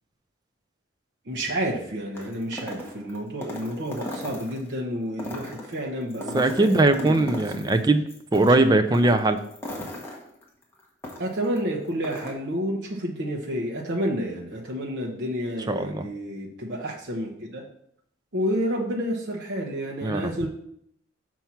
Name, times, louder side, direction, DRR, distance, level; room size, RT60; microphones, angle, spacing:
voice 1, 1.3-7.4 8.5-8.8 11.2-17.6 18.3-20.5, equal, 60° right, -2 dB, 0.9 m, -30 dB
sound 1, 2.1-4.7 5.1-7.8 8.1-11.6 11.9-12.3, left 1 dB, 10° left, 1.2 m, -38 dB
voice 2, 6.3-8.0 8.3-9.4 15.7-16.1 20.0-20.2, right 2 dB, 20° right, 8 dB, 0.4 m, -20 dB
5.9 x 4.5 x 5.7 m, 0.70 s
head